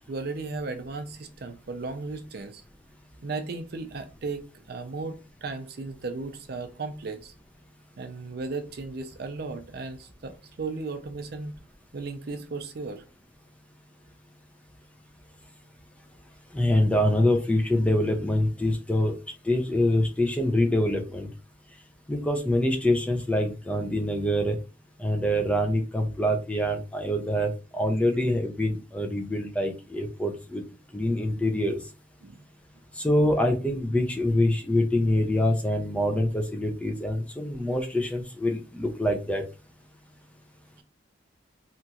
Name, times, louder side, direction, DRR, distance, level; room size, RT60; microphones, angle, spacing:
voice 1, 0.1-2.6 3.2-7.3 8.0-11.5 11.9-13.0 32.2-32.4, right 3 dB, 50° right, 0.4 m, -35 dB
voice 2, 16.5-19.1 19.4-21.3 22.1-24.6 25.0-30.6 30.9-31.8 33.0-39.4, left 1 dB, 5° left, 0.4 m, -25 dB
2.9 x 2.3 x 2.8 m
head